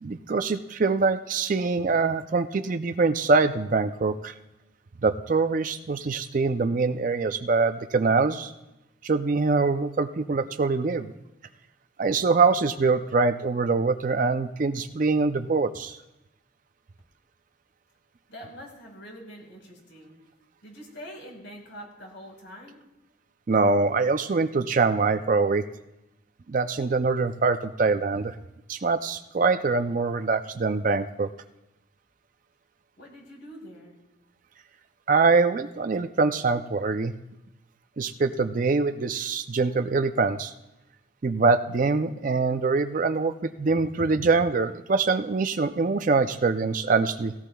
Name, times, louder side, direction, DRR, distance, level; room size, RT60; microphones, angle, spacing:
voice 1, 0.0-4.3 5.0-8.5 9.0-11.1 12.0-16.0 23.5-25.6 26.5-28.3 28.7-31.3 35.1-37.1 38.0-40.5 41.2-47.3, right 4 dB, 40° right, 9 dB, 0.4 m, -24 dB
voice 2, 18.3-20.2 20.6-22.8 33.0-34.0, equal, 65° left, -1 dB, 4.5 m, -44 dB
18.0 x 16.5 x 2.3 m, 0.95 s
head